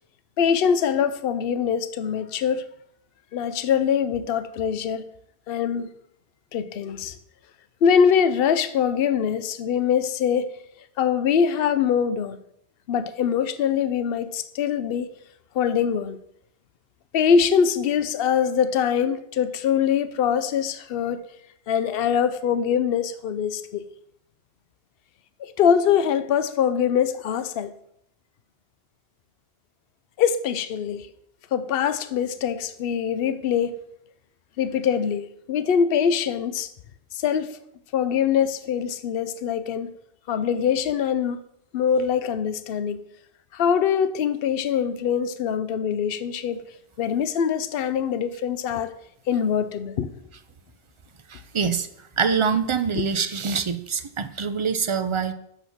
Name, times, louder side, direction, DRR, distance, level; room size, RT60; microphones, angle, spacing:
voice 1, 0.4-2.6 3.3-5.0 5.5-5.9 6.5-7.1 7.8-10.5 11.0-12.4 12.9-15.1 15.5-16.2 17.1-21.2 21.7-23.8 25.4-27.7 30.2-31.1 31.5-33.8 34.6-36.7 37.1-37.6 37.9-39.9 40.3-41.4 41.7-43.0 43.5-46.6 47.0-48.9 49.3-50.1, left 7 dB, 65° left, 0.8 m, -23 dB
voice 2, 51.3-55.3, right 6 dB, 40° right, 0.5 m, -25 dB
6.1 x 5.7 x 7.1 m
omnidirectional pair, 1.1 m